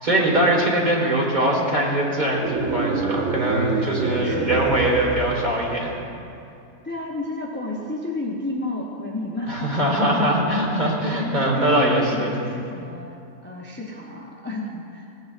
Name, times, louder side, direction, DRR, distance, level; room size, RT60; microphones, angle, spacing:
voice 1, 0.0-5.9 9.5-12.3, right 1 dB, 35° right, -3 dB, 1.8 m, -22 dB
sound 1, 2.3-5.9, right 4 dB, 85° right, 1.1 m, -27 dB
voice 2, 3.7-4.5 6.8-9.7 11.0-13.2 13.4-15.1, left 2 dB, 10° left, -3 dB, 0.7 m, -31 dB
16.0 x 9.4 x 2.5 m, 2.5 s
omnidirectional pair, 1.4 m